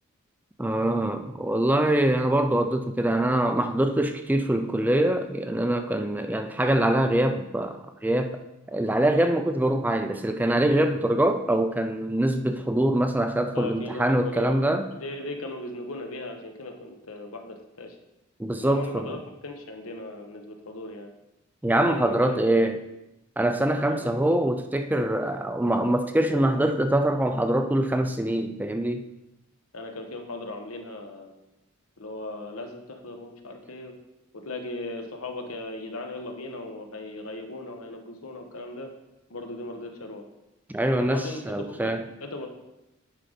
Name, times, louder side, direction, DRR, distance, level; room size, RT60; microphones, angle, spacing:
voice 1, 0.6-8.3 8.7-14.9 18.4-19.2 21.6-22.8 23.4-29.0 40.7-42.1, right 1 dB, 10° right, 7 dB, 0.3 m, -24 dB
voice 2, 13.5-14.6 14.9-18.0 18.6-21.1 21.8-22.7 23.9-24.1 29.7-31.4 32.0-33.9 34.3-38.9 39.3-40.2 41.0-41.9 42.2-42.5, left 2 dB, 80° left, 4 dB, 1.1 m, -37 dB
10.0 x 3.8 x 5.0 m, 0.92 s
head